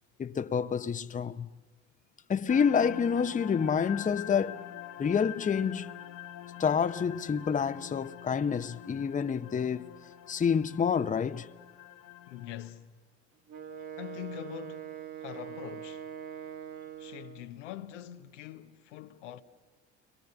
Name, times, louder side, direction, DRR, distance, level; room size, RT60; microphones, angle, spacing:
voice 1, 0.2-1.5 2.3-4.6 5.0-5.9 6.6-9.9 10.3-11.5, left 6 dB, 20° left, 0.8 m, -28 dB
sound 1, 2.5-12.7, left 12 dB, 65° left, 2.4 m, -45 dB
voice 2, 12.3-13.0 14.0-16.1 17.0-19.4, left 11 dB, 85° left, 1.1 m, -44 dB
Wind instrument woodwind instrument, 13.5-17.5, right 9 dB, 55° right, 2.6 m, -43 dB
29.5 x 22.5 x 6.9 m
hypercardioid pair, 70°, 35 cm